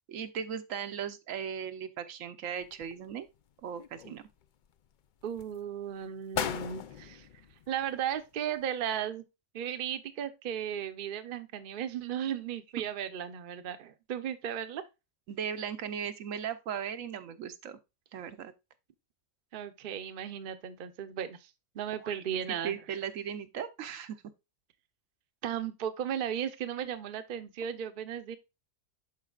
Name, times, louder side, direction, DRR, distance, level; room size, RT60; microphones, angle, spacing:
voice 1, 0.1-3.3 3.6-4.2 15.3-17.8 18.1-18.5 22.0-24.2, right 8 dB, 85° right, 1.1 m, -37 dB
sound 1, 2.6-3.4 3.8-4.7 5.2-5.6 6.0-6.1 6.3-8.3 8.6-8.7, left 9 dB, 65° left, 0.5 m, -38 dB
voice 2, 5.2-7.3 7.7-9.2 9.5-14.8 19.5-22.7 25.4-28.4, right 9 dB, 50° right, 0.7 m, -35 dB
11.5 x 4.1 x 2.3 m
omnidirectional pair, 1.3 m